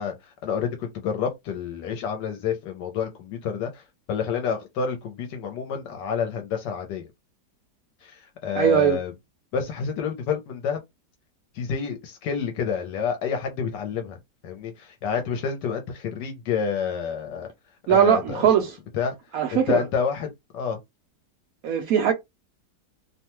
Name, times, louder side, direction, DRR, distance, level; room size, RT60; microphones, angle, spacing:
voice 1, 0.0-7.0 8.0-9.1 9.5-10.8 11.5-14.2 14.4-17.5 17.9-18.5 18.9-19.1 19.5-20.8, left 6 dB, 80° left, 1.2 m, -29 dB
voice 2, 8.5-9.0 17.9-18.8 19.3-19.8 21.6-22.1, right 9 dB, 70° right, 0.8 m, -20 dB
3.0 x 2.2 x 2.9 m
omnidirectional pair, 1.9 m